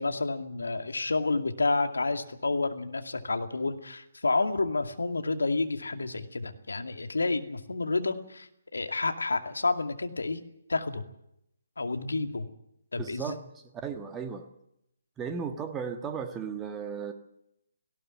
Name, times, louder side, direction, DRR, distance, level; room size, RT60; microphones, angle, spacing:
voice 1, 0.0-10.4 10.7-11.0 11.8-12.5 12.9-13.4, left 3 dB, 70° left, 6 dB, 2.4 m, -30 dB
voice 2, 13.0-14.5 15.2-17.1, right 6 dB, 15° right, 5 dB, 1.6 m, -35 dB
18.5 x 17.0 x 9.7 m, 0.81 s
figure-of-eight pair, 140°, 0 cm